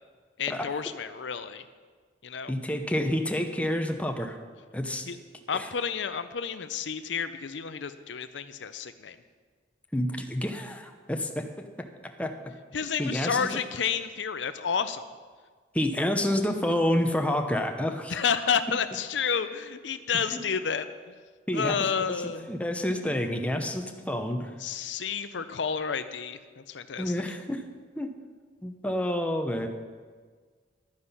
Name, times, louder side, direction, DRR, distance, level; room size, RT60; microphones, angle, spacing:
voice 1, 0.4-1.6 2.2-2.5 5.1-5.2 5.5-9.2 12.7-15.0 18.1-21.1 21.5-22.5 24.6-27.2, left 6 dB, 80° left, 11 dB, 0.6 m, -30 dB
voice 2, 2.5-4.4 4.7-5.1 5.5-5.7 9.9-11.9 12.2-12.3 13.0-13.5 15.7-18.2 20.3-20.4 21.5-21.8 22.5-24.5 27.0-27.6 28.0-28.1 28.6-29.7, left 1 dB, 5° left, 4 dB, 0.8 m, -28 dB
12.0 x 9.6 x 5.7 m, 1.5 s
head